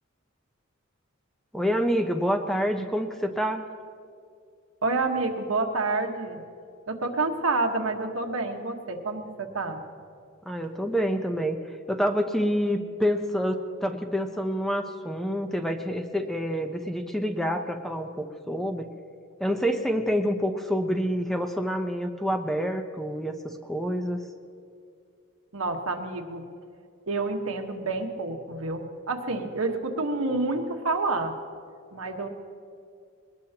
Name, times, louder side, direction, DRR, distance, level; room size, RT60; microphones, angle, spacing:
voice 1, 1.5-3.6 10.5-11.6 11.9-18.9 19.4-24.2, equal, ahead, 5 dB, 0.8 m, -27 dB
voice 2, 4.8-6.4 6.9-9.8 25.5-26.4 27.1-31.3 31.9-32.3, right 3 dB, 85° right, 3 dB, 1.5 m, -28 dB
21.5 x 19.5 x 3.0 m, 2.3 s
head